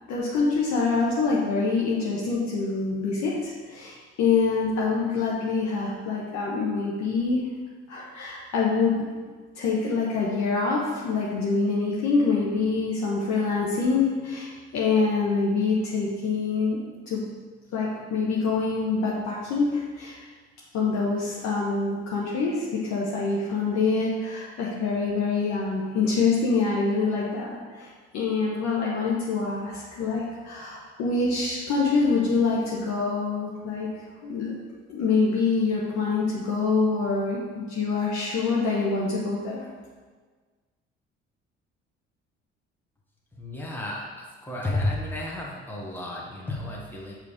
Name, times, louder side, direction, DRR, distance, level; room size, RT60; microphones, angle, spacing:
voice 1, 0.1-7.4 7.9-9.0 9.5-16.8 17.1-17.2 17.7-20.2 20.7-33.9 34.2-34.5 34.9-39.6, left 4 dB, 60° left, -5 dB, 1.2 m, -25 dB
voice 2, 43.3-47.1, left 1 dB, 5° left, -4 dB, 1.4 m, -32 dB
6.8 x 3.2 x 5.1 m, 1.4 s
hypercardioid pair, 50°, 32 cm